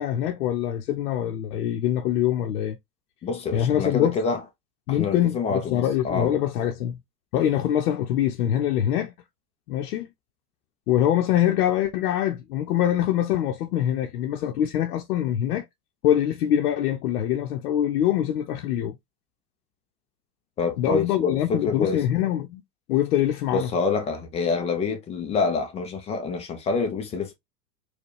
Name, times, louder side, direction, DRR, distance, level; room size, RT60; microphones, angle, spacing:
voice 1, 0.0-2.8 3.5-4.2 4.9-7.0 7.3-9.1 9.7-10.1 10.9-15.6 16.0-19.0 20.8-22.6 22.9-23.7, left 11 dB, 65° left, 0.7 m, -24 dB
voice 2, 3.2-4.4 4.9-6.3 20.6-22.0 23.5-27.3, left 4 dB, 15° left, 0.3 m, -27 dB
4.4 x 2.3 x 3.1 m
hypercardioid pair, 110°, 48 cm